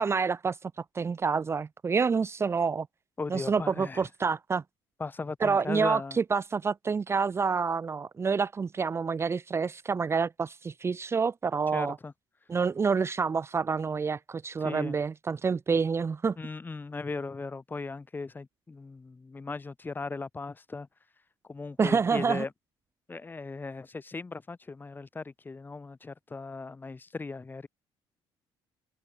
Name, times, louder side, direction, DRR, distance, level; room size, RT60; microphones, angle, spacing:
voice 1, 0.0-2.9 3.3-4.6 5.4-12.0 12.5-16.3 21.8-22.4, right 5 dB, 25° right, 1.3 m, -28 dB
voice 2, 3.2-4.1 5.0-6.2 11.7-12.1 14.6-15.0 16.4-20.9 21.5-22.5 23.1-27.7, left 3 dB, 20° left, 6.5 m, -38 dB
cardioid pair, 125°, 10 cm